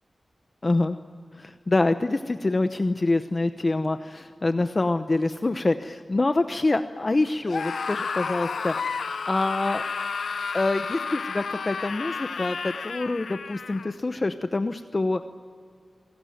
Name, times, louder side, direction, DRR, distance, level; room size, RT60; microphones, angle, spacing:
voice 1, 0.6-1.0 1.4-9.8 10.5-15.2, left 2 dB, 40° left, 9 dB, 0.9 m, -26 dB
Screaming, 7.4-13.9, left 5 dB, 90° left, 1.0 m, -31 dB
27.5 x 18.0 x 9.2 m, 2.1 s
wide cardioid pair, 75°, 0 cm